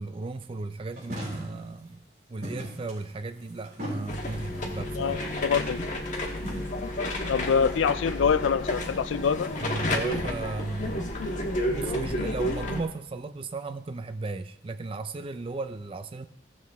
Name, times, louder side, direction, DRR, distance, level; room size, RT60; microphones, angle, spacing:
voice 1, 0.0-2.0 2.3-5.1 9.6-11.4 11.7-16.3, right 3 dB, 30° right, 9 dB, 0.4 m, -35 dB
sound 1, 1.0-1.7 2.4-4.6 5.2-5.5 6.0-6.8, equal, 55° right, 4.1 m, -38 dB
sound 2, 4.1-12.8, left 1 dB, 40° left, 1.5 m, -31 dB
voice 2, 5.0-5.8 7.3-9.5, left 6 dB, 90° left, 14 dB, 0.4 m, -25 dB
16.0 x 7.3 x 3.5 m, 0.73 s
head